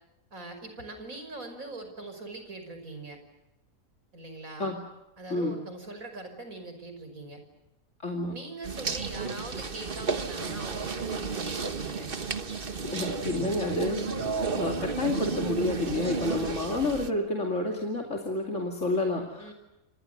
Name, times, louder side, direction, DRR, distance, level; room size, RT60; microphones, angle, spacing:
voice 1, 0.3-3.2 4.1-4.7 5.2-7.4 8.3-12.1 19.4-19.5, right 2 dB, 70° right, 7 dB, 6.1 m, -42 dB
voice 2, 8.0-8.3 12.9-14.1 14.6-19.5, left 2 dB, 55° left, 1 dB, 3.0 m, -29 dB
sound 1, 8.6-17.1, right 4 dB, 40° right, 1.5 m, -32 dB
28.5 x 26.5 x 6.7 m, 0.95 s
omnidirectional pair, 1.5 m